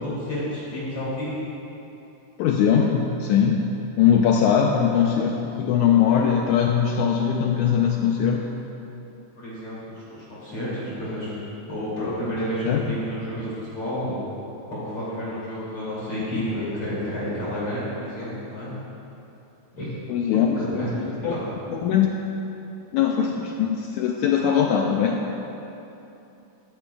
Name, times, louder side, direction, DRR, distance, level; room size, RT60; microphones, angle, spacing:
voice 1, 0.0-1.3 4.9-5.0 9.4-11.3 11.7-14.2 14.7-18.7 19.7-19.9 20.3-20.9 21.2-21.4, equal, 40° left, -9 dB, 3.3 m, -30 dB
voice 2, 2.4-3.7 4.0-8.4 12.7-13.0 20.1-21.4 21.7-22.1 22.9-25.2, left 8 dB, 85° left, 1 dB, 1.7 m, -21 dB
14.5 x 13.0 x 2.3 m, 2.9 s
omnidirectional pair, 4.0 m